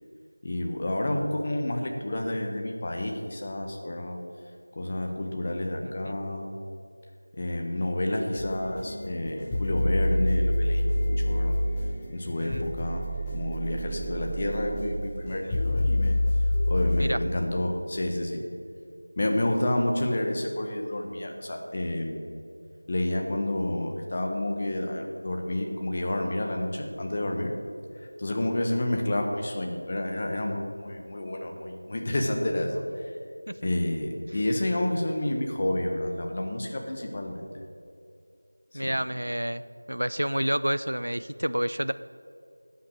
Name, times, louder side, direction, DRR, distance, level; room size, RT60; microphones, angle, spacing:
voice 1, 0.4-4.2 4.7-6.4 7.3-11.6 12.1-16.2 16.7-18.4 19.2-22.3 22.9-27.5 28.2-32.8 33.6-37.6 38.7-38.9, left 1 dB, 30° left, 2 dB, 1.3 m, -29 dB
voice 2, 5.8-6.2 12.4-12.7 17.0-17.2 33.5-33.6 38.7-39.6 39.9-41.9, equal, 90° right, 13 dB, 0.4 m, -29 dB
sound 1, 8.3-17.1, left 1 dB, 5° left, 1.1 m, -27 dB
18.0 x 5.9 x 6.3 m, 2.5 s
figure-of-eight pair, 175°, 0 cm